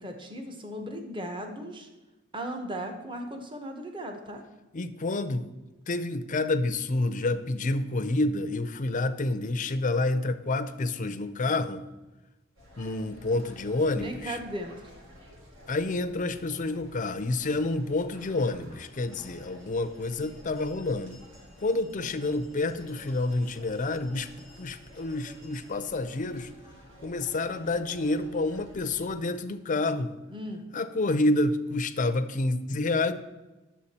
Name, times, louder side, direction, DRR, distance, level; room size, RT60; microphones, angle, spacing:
voice 1, 0.0-1.9 2.3-4.4 13.9-14.9 22.1-22.5 30.3-30.6, right 1 dB, 25° right, 4 dB, 1.0 m, -37 dB
voice 2, 4.7-5.5 5.9-11.8 12.8-14.4 15.7-21.2 21.6-26.5 27.0-30.1 30.7-33.1, left 2 dB, 40° left, 10 dB, 0.5 m, -28 dB
sound 1, 12.6-29.2, equal, 65° right, 2.0 m, -51 dB
9.7 x 7.3 x 4.2 m, 1.1 s
head